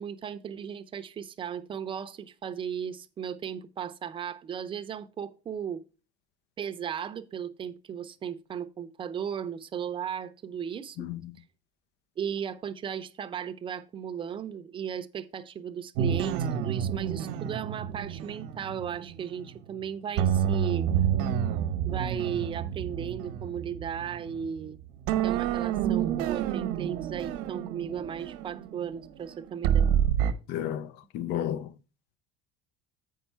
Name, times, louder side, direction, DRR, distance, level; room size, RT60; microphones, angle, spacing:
voice 1, 0.0-5.8 6.6-11.1 12.2-20.9 21.8-24.8 25.2-29.9, right 8 dB, 25° right, 0.7 m, -36 dB
voice 2, 11.0-11.3 30.5-31.7, left 11 dB, 60° left, 0.7 m, -32 dB
sound 1, 16.0-19.7 20.2-24.7 25.1-30.3, right 9 dB, 75° right, 1.1 m, -29 dB
8.3 x 5.5 x 4.5 m
cardioid pair, 135°, 19 cm